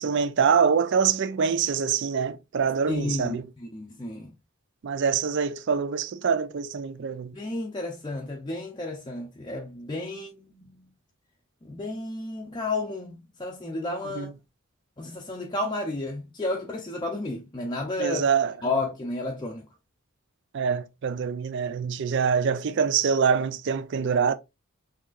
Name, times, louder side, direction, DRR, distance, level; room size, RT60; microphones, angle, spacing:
voice 1, 0.0-3.5 4.8-7.4 14.1-14.3 18.0-18.5 20.5-24.3, right 6 dB, 55° right, 0.4 m, -25 dB
voice 2, 2.9-4.3 7.3-10.9 11.6-14.3 15.0-18.3 18.6-19.7, left 2 dB, 20° left, 0.5 m, -32 dB
5.9 x 2.9 x 2.4 m
head